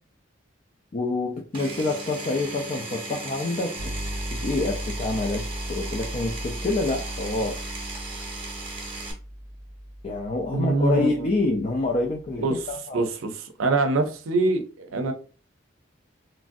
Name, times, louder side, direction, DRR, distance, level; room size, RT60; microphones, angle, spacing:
voice 1, 0.9-3.9 4.3-7.6 10.0-13.0, left 2 dB, 35° left, 0.3 m, -27 dB
Power tool, 1.5-9.1, right 3 dB, 25° right, 0.8 m, -36 dB
sound 1, 3.8-12.7, equal, 65° left, 1.1 m, -37 dB
voice 2, 10.5-11.3 12.4-15.1, right 3 dB, 90° right, 0.5 m, -25 dB
3.1 x 2.5 x 2.5 m
head